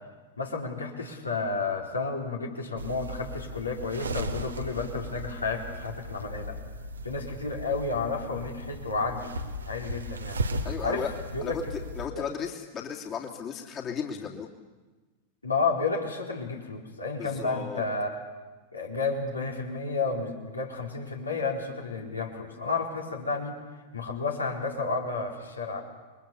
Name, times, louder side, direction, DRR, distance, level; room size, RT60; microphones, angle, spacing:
voice 1, 0.4-6.6 7.0-9.3 9.7-10.4 10.8-11.0 11.3-11.6 12.1-12.3 15.4-18.2 18.7-23.6 23.9-25.8, left 4 dB, 80° left, 0 dB, 4.5 m, -31 dB
sound 1, 2.8-12.1, right 1 dB, 75° right, 1.9 m, -37 dB
voice 2, 10.6-11.1 11.4-14.5 17.2-17.8, left 7 dB, 30° left, 0 dB, 2.9 m, -35 dB
29.0 x 23.0 x 7.0 m, 1.3 s
figure-of-eight pair, 90°, 0 cm